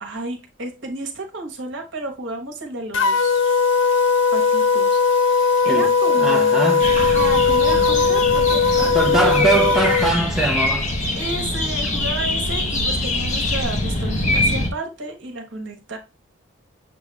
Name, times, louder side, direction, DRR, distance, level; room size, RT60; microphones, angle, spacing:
voice 1, 0.0-3.6 4.3-5.0 5.3-6.7 7.0-9.7 11.1-16.0, right 2 dB, 75° right, 1.1 m, -32 dB
sound 1, 2.9-10.1, left 5 dB, 80° left, 0.5 m, -18 dB
voice 2, 6.2-6.8 8.9-10.9, right 2 dB, ahead, 0.6 m, -21 dB
sound 2, 6.8-14.7, left 1 dB, 35° left, 0.8 m, -23 dB
6.7 x 2.4 x 3.2 m
head